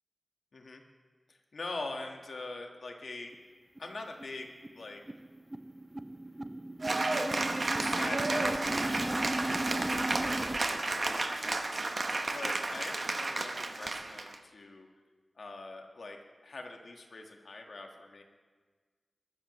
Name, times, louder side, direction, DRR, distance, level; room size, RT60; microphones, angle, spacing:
voice 1, 1.3-3.3 3.8-5.0 7.8-14.9 15.3-18.2, left 3 dB, 75° left, 2 dB, 1.6 m, -44 dB
sound 1, 3.3-3.4 3.8-3.9 4.2-4.4 4.6-10.6, right 1 dB, 20° right, 0.5 m, -36 dB
Cheering / Applause, 6.8-14.3, right 2 dB, 50° right, 0.9 m, -32 dB
21.5 x 12.5 x 3.1 m, 1.4 s
wide cardioid pair, 90°, 0 cm